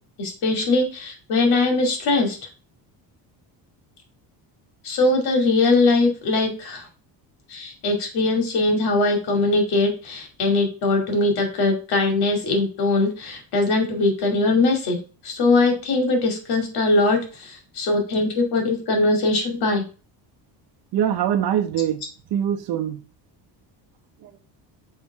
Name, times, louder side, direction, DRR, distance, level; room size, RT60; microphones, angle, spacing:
voice 1, 0.2-2.4 4.8-6.9 7.5-15.0 15.2-19.8, left 2 dB, 60° left, 2.4 m, -21 dB
voice 2, 20.9-22.0 22.3-23.0 24.2-24.4, right 10 dB, 60° right, 1.0 m, -23 dB
7.1 x 3.4 x 4.8 m
cardioid pair, 175°, 44 cm